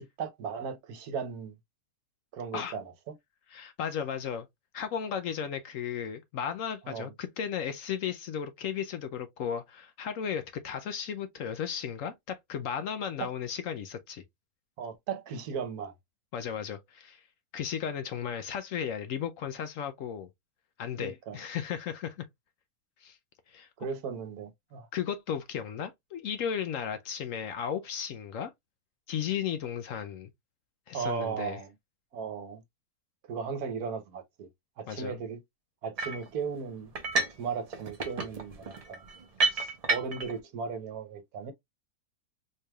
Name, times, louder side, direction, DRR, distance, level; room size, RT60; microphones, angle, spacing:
voice 1, 0.0-1.5 2.3-3.1 6.9-7.1 13.2-13.3 14.8-15.9 21.0-21.4 23.8-24.9 30.9-31.7 32.1-32.6 33.3-34.5 34.8-35.4 35.8-36.9 37.4-39.0 39.5-41.5, right 6 dB, 75° right, 1.3 m, -36 dB
voice 2, 3.5-4.5 4.7-14.2 16.3-17.2 17.5-20.3 20.8-22.3 23.0-23.2 23.5-23.7 24.9-28.5 29.1-30.3 30.9-31.6 34.9-35.2, left 8 dB, 70° left, 0.9 m, -35 dB
sound 1, 36.0-36.3 36.9-37.4 37.7-40.3, right 3 dB, 40° right, 0.5 m, -30 dB
4.4 x 3.3 x 2.3 m
omnidirectional pair, 1.7 m